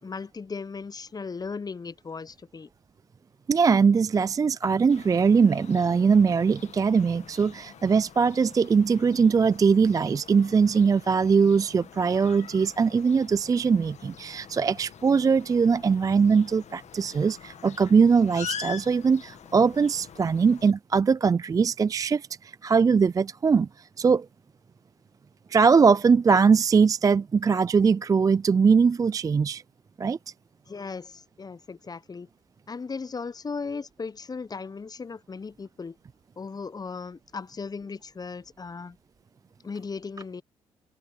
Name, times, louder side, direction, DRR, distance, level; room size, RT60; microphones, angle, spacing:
voice 1, 0.0-2.7 30.7-32.3 32.7-36.0 36.4-39.0 39.6-40.4, left 4 dB, 30° left, 0.8 m, -37 dB
voice 2, 3.5-24.3 25.5-29.6 30.0-30.2, right 5 dB, 25° right, 0.3 m, -21 dB
sound 1, 4.9-20.7, left 9 dB, 55° left, 1.5 m, -45 dB
hypercardioid pair, 50°, 14 cm